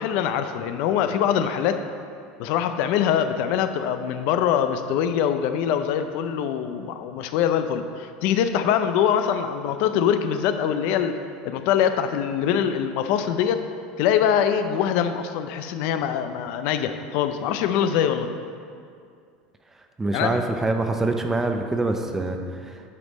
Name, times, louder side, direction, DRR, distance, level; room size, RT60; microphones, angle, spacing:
voice 1, 0.0-1.8 2.4-11.1 11.4-13.6 14.0-18.3 20.1-20.4, left 9 dB, 60° left, 9 dB, 0.5 m, -23 dB
voice 2, 20.0-22.8, right 2 dB, 10° right, 5 dB, 0.5 m, -25 dB
9.5 x 5.3 x 4.1 m, 2.3 s
cardioid pair, 155°, 3 cm